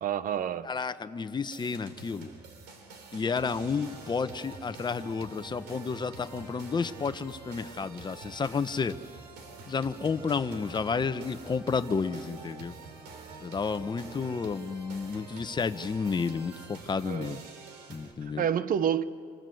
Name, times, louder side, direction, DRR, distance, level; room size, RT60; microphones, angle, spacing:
voice 1, 0.0-0.7 17.1-17.4 18.4-19.0, right 9 dB, 55° right, 15 dB, 1.0 m, -28 dB
voice 2, 0.6-2.3 3.1-9.0 9.7-12.7 13.4-17.4 17.9-18.5, left 5 dB, 25° left, 11 dB, 1.0 m, -31 dB
sound 1, 1.5-18.1, right 4 dB, 90° right, 3.8 m, -47 dB
26.5 x 26.5 x 7.9 m, 2.4 s
cardioid pair, 110°, 17 cm